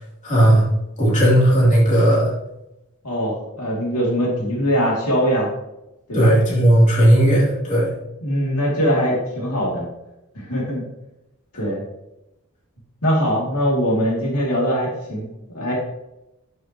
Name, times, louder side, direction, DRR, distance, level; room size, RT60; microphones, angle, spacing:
voice 1, 0.2-0.6 1.0-2.3 6.1-7.9, right 1 dB, 35° left, -6 dB, 3.0 m, -15 dB
voice 2, 3.0-5.5 6.1-6.3 8.2-9.9 10.3-10.8 11.5-11.8 13.0-15.2 15.5-15.7, equal, 85° left, -3 dB, 2.6 m, -21 dB
11.5 x 6.4 x 3.0 m, 0.92 s
head